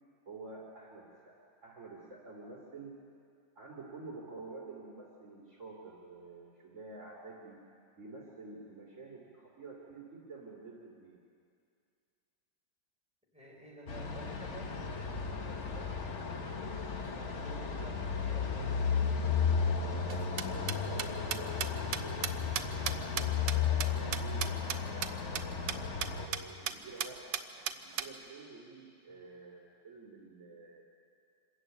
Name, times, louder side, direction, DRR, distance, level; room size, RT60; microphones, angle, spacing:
voice 1, 0.3-2.9 3.5-7.6 8.0-11.2 20.4-25.5 26.2-27.4 27.7-30.8, right 3 dB, 40° right, -4 dB, 2.9 m, -49 dB
voice 2, 13.3-16.4 16.8-19.4 29.1-29.3, right 1 dB, 5° right, -4 dB, 5.4 m, -52 dB
sound 1, 13.9-26.3, left 6 dB, 40° left, 1.4 m, -34 dB
sound 2, 20.1-24.8 25.0-25.1 25.3-25.4 25.7-25.8 26.0-26.4 26.7-26.8 27.0-28.1, right 9 dB, 75° right, 1.4 m, -35 dB
25.5 x 14.0 x 9.1 m, 2.4 s
omnidirectional pair, 2.0 m